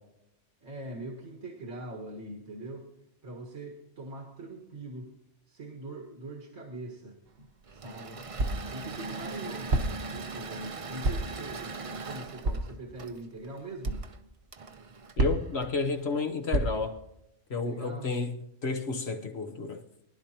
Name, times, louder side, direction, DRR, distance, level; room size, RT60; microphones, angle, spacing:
voice 1, 0.6-2.9 3.2-5.1 5.5-8.2 8.7-14.1 17.5-18.1, right 2 dB, 85° right, -1 dB, 2.1 m, -42 dB
sound 1, 7.3-7.4 8.4-8.7 9.7-10.1 11.0-11.4 12.4-12.8 13.8-14.1 15.2-15.6 16.5-16.9, right 2 dB, 55° right, 1.2 m, -29 dB
Engine / Mechanisms, 7.6-16.0, right 4 dB, 35° right, 0.6 m, -41 dB
voice 2, 15.2-16.9 17.5-18.3 18.6-19.8, left 4 dB, 60° left, 4 dB, 1.3 m, -31 dB
23.0 x 11.5 x 2.9 m, 0.82 s
omnidirectional pair, 1.2 m